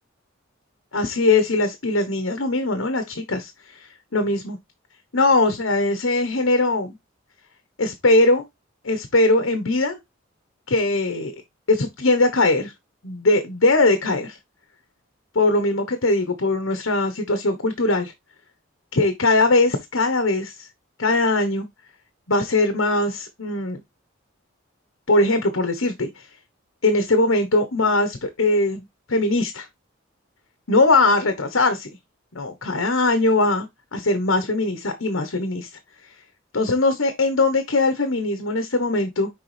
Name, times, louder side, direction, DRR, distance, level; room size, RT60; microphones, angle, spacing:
voice 1, 0.9-4.6 5.1-7.0 7.8-8.4 8.8-10.0 10.7-11.3 11.7-12.7 13.0-14.4 15.3-18.1 18.9-20.7 21.0-21.7 22.3-23.8 25.1-26.3 26.8-29.7 30.7-31.9 32.3-33.7 33.9-35.7 36.0-36.2 36.5-39.3, left 2 dB, 75° left, 1.2 m, -21 dB
6.7 x 4.9 x 3.4 m
head